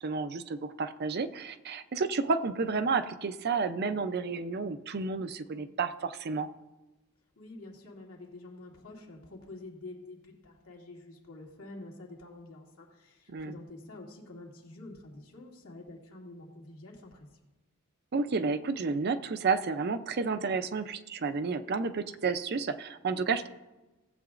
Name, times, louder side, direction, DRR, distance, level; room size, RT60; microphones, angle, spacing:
voice 1, 0.0-6.5 13.3-13.5 18.1-23.5, right 4 dB, 50° right, 10 dB, 0.5 m, -31 dB
voice 2, 7.4-17.4, left 2 dB, 80° left, -2 dB, 2.4 m, -48 dB
18.0 x 7.9 x 2.5 m, 1.1 s
head